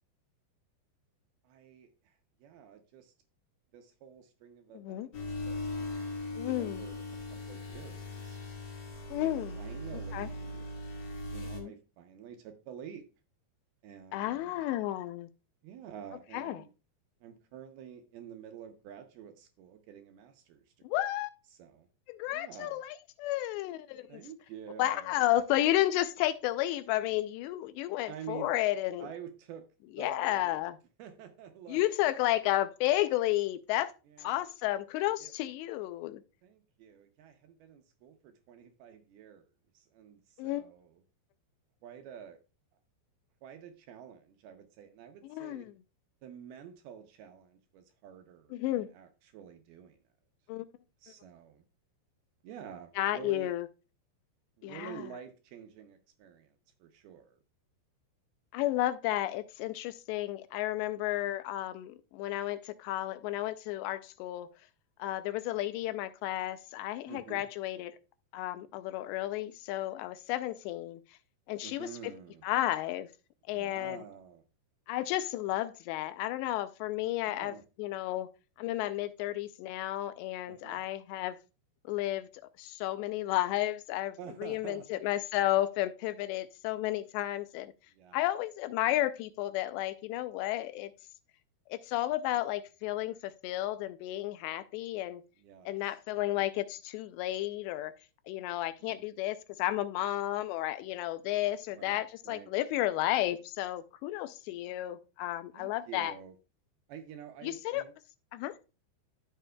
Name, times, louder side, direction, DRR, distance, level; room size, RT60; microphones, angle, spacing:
voice 1, 1.4-3.1 3.7-5.1 5.5-7.0 7.3-8.4 9.2-10.7 11.3-13.1 13.8-14.7 15.6-16.7 17.2-20.6 21.5-21.9 22.3-22.8 24.1-25.2 28.1-28.5 29.0-29.7 30.0-30.6 31.0-31.9 34.1-34.5 35.2-35.3 36.4-39.5 39.7-41.0 41.8-42.4 43.4-45.7 46.2-50.0 51.0-51.6 52.4-53.5 54.6-57.4 67.1-67.4 71.6-72.4 73.5-74.4 77.3-77.6 80.5-80.8 84.2-85.0 87.9-88.2 95.4-96.0 98.8-99.0 101.7-102.5 105.5-106.4 106.9-107.9, right 8 dB, 75° right, 2.4 m, -49 dB
voice 2, 4.7-5.1 6.4-6.8 9.1-9.5 10.1-10.3 11.6-11.7 14.1-15.3 16.3-16.6 20.8-21.3 22.1-24.2 24.8-29.1 30.0-30.8 31.7-33.9 34.2-36.2 40.4-40.6 45.3-45.7 48.5-48.9 50.5-50.7 53.0-53.7 54.6-55.0 58.5-64.5 65.0-68.0 68.3-71.0 71.5-71.9 72.4-73.1 73.5-74.0 74.9-78.3 78.6-81.4 81.9-82.3 82.6-87.7 88.1-90.9 91.7-95.2 95.7-97.9 98.3-106.1 107.4-107.8 108.3-108.5, left 15 dB, 85° left, 2.7 m, -32 dB
sound 1, 5.1-11.6, left 2 dB, 65° left, 1.1 m, -39 dB
12.5 x 6.7 x 2.2 m
omnidirectional pair, 5.1 m